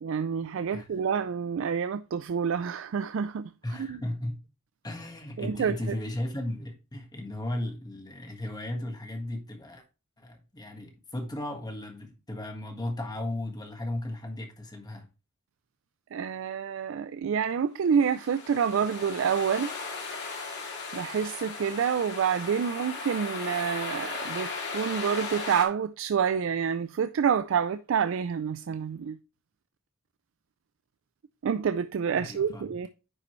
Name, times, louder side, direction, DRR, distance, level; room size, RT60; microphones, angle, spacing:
voice 1, 0.0-3.5 3.8-4.0 5.4-6.0 16.1-19.7 20.9-29.2 31.4-32.9, right 7 dB, 65° right, 0.4 m, -28 dB
voice 2, 0.7-1.0 3.6-4.4 4.8-9.8 10.2-15.1 32.2-32.7, left 1 dB, 20° left, 1.5 m, -35 dB
sound 1, 18.0-25.6, left 4 dB, 55° left, 2.1 m, -37 dB
9.6 x 5.2 x 3.1 m
head